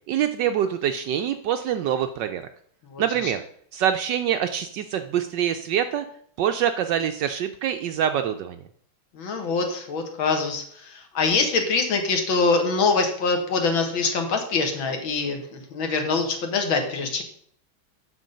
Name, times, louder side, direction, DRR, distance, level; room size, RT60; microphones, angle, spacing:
voice 1, 0.1-2.4 3.0-3.4 3.7-6.0 6.4-8.6, right 9 dB, 75° right, 8 dB, 1.0 m, -25 dB
voice 2, 2.9-3.3 9.1-17.2, left 4 dB, 70° left, 4 dB, 2.1 m, -24 dB
8.3 x 6.4 x 5.3 m, 0.62 s
omnidirectional pair, 2.3 m